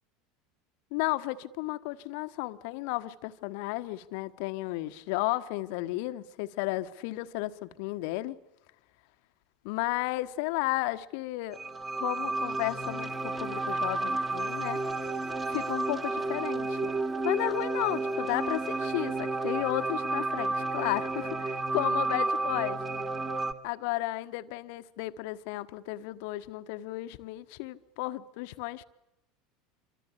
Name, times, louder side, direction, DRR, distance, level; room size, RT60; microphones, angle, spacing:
voice 1, 0.9-8.4 9.6-11.6 12.0-14.8 15.5-16.9 17.2-22.8 23.6-28.8, left 18 dB, 55° left, 1.4 m, -33 dB
sound 1, 11.5-23.5, right 2 dB, 20° right, 3.1 m, -31 dB
28.0 x 24.5 x 8.6 m
figure-of-eight pair, 75°, 0 cm